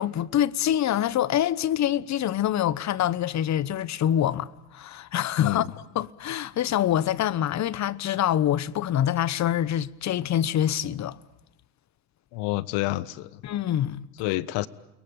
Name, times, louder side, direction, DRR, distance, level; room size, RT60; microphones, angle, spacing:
voice 1, 0.0-5.7 5.9-11.2 13.4-14.0, left 11 dB, 35° left, 1.1 m, -25 dB
voice 2, 5.4-5.7 12.3-13.4 14.2-14.7, left 18 dB, 65° left, 1.5 m, -28 dB
29.5 x 22.5 x 8.8 m
supercardioid pair, 105°, 45 cm